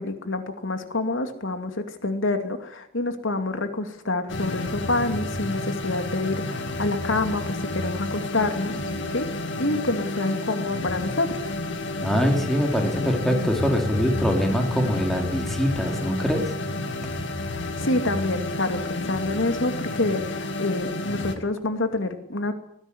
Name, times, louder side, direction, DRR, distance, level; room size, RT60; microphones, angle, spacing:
voice 1, 0.0-8.8 9.1-11.5 17.4-22.5, left 2 dB, 90° left, 7 dB, 2.5 m, -27 dB
sound 1, 4.3-21.3, left 2 dB, 65° left, 2.4 m, -30 dB
voice 2, 12.0-16.6, equal, ahead, 3 dB, 3.5 m, -23 dB
20.0 x 15.5 x 10.0 m, 0.77 s
head